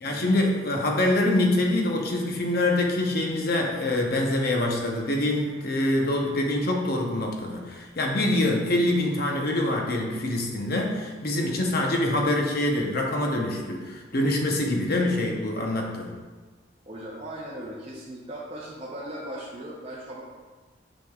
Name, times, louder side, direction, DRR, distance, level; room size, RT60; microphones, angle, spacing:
voice 1, 0.0-16.1, left 1 dB, 50° left, 1 dB, 0.8 m, -25 dB
voice 2, 16.9-20.2, right 1 dB, 30° right, -6 dB, 0.7 m, -38 dB
6.4 x 6.2 x 2.4 m, 1.4 s
head